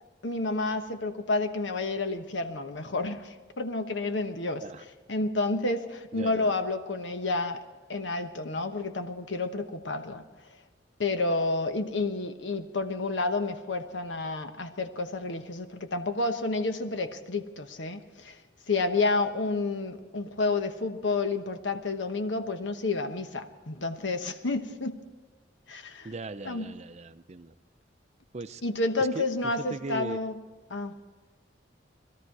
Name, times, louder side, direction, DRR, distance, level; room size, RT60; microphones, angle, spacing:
voice 1, 0.2-4.6 5.1-7.6 7.9-10.2 11.0-18.4 18.7-25.0 25.7-26.1 26.4-26.6 28.6-30.4 30.7-30.9, left 3 dB, 85° left, 8 dB, 1.1 m, -30 dB
voice 2, 6.1-6.5 26.0-27.5 28.3-28.6 29.1-30.2, right 3 dB, 40° right, 11 dB, 0.6 m, -39 dB
21.0 x 13.0 x 4.7 m, 1.4 s
head